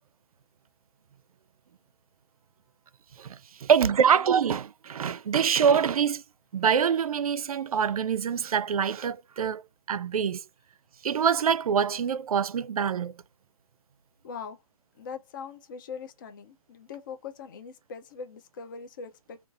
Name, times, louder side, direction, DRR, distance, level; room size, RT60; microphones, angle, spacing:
voice 1, 3.2-6.2 6.5-9.6 9.9-10.4 11.0-13.1, right 7 dB, 80° right, 0.4 m, -25 dB
voice 2, 14.2-14.6 15.0-19.4, left 6 dB, 35° left, 0.4 m, -41 dB
3.6 x 2.4 x 2.4 m
hypercardioid pair, 155°, 18 cm